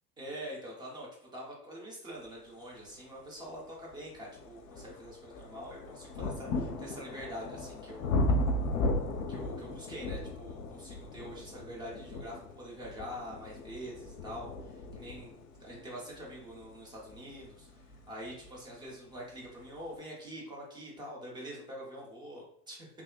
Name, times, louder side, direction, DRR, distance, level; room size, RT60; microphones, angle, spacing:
voice 1, 0.2-1.1 1.3-8.5 9.3-22.9, equal, 10° right, -3 dB, 0.3 m, -45 dB
sound 1, 3.3-3.4 3.9-18.6 19.5-19.6, left 1 dB, 55° left, 0.5 m, -36 dB
3.3 x 2.0 x 2.3 m, 0.68 s
figure-of-eight pair, 75°, 48 cm